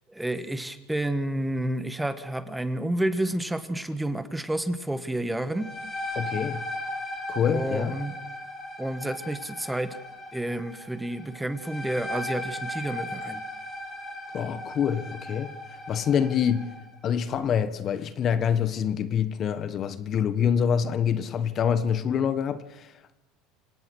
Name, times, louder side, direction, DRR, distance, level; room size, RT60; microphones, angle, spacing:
voice 1, 0.1-5.7 7.5-8.2 8.8-10.0 10.3-13.4, right 1 dB, 5° right, 1.5 m, -30 dB
sound 1, 5.4-16.9, left 1 dB, 20° left, 6.3 m, -37 dB
voice 2, 6.1-6.6 7.3-7.9 14.3-15.5 15.9-16.7 17.0-23.1, left 8 dB, 40° left, 1.4 m, -26 dB
27.0 x 17.5 x 6.3 m
supercardioid pair, 125°, 0 cm